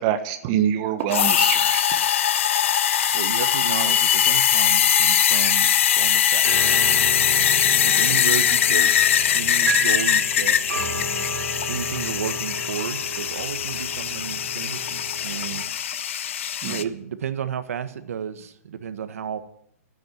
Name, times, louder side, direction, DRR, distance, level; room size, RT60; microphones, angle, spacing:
voice 1, 0.0-1.8 16.6-16.8, right 10 dB, 25° right, 8 dB, 1.2 m, -25 dB
sound 1, 1.1-16.8, left 9 dB, 50° left, 0.7 m, -21 dB
voice 2, 3.1-6.7 7.4-9.0 9.3-10.6 11.7-15.6 16.6-19.4, right 8 dB, 65° right, 10 dB, 1.4 m, -32 dB
sound 2, 6.4-15.7, right 4 dB, 90° right, 3.5 m, -33 dB
13.0 x 9.1 x 9.3 m, 0.73 s
hypercardioid pair, 175°, 8 cm